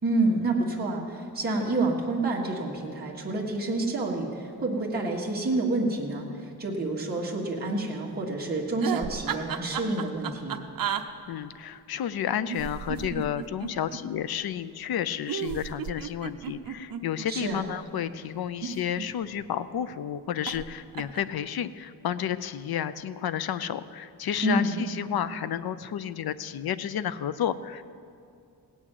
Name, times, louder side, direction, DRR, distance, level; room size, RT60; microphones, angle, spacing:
voice 1, 0.0-10.6 17.3-17.7 24.4-24.8, right 2 dB, 25° right, -4 dB, 1.6 m, -28 dB
sound 1, 8.8-11.0 12.5-14.0 15.3-17.6 18.4-19.4 20.5-20.7 20.9-21.4, right 8 dB, 65° right, 0.7 m, -33 dB
voice 2, 11.3-27.8, left 9 dB, 80° left, 14 dB, 0.6 m, -31 dB
17.5 x 6.3 x 9.1 m, 2.5 s
wide cardioid pair, 175°, 37 cm